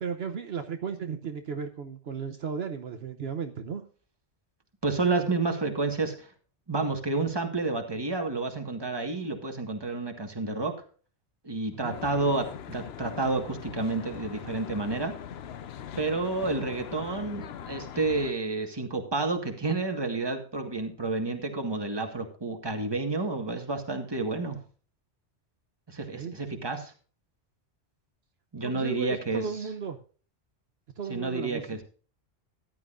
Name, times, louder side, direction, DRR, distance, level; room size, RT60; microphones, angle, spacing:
voice 1, 0.0-3.8 11.7-12.0 26.1-26.4 28.6-30.0 31.0-31.8, right 6 dB, 65° right, 6 dB, 1.1 m, -35 dB
voice 2, 4.8-6.3 6.7-10.7 11.4-15.1 16.0-24.6 25.9-26.9 28.5-29.4 31.1-31.8, right 3 dB, 20° right, 5 dB, 1.7 m, -30 dB
Traffic noise roadway noise, 11.9-18.3, left 9 dB, 70° left, 0.9 m, -41 dB
14.5 x 11.0 x 2.5 m, 0.39 s
omnidirectional pair, 1.1 m